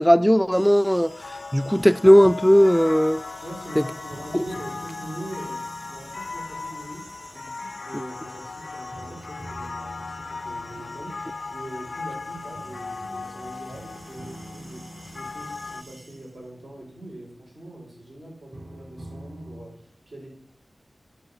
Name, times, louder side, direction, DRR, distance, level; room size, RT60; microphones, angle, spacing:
voice 1, 0.0-3.2 3.8-3.9 4.3-4.4, equal, ahead, 0.3 m, -17 dB
sound 1, 0.5-16.5, right 1 dB, 60° right, 3.4 m, -50 dB
sound 2, 0.9-15.8, left 4 dB, 75° left, 0.4 m, -37 dB
voice 2, 3.4-7.1 7.3-20.3, right 1 dB, 80° right, 4.8 m, -42 dB
sound 3, 4.1-8.1 8.9-17.7 18.5-19.7, right 1 dB, 40° right, 3.3 m, -46 dB
12.0 x 5.0 x 5.5 m
cardioid pair, 40°, 0 cm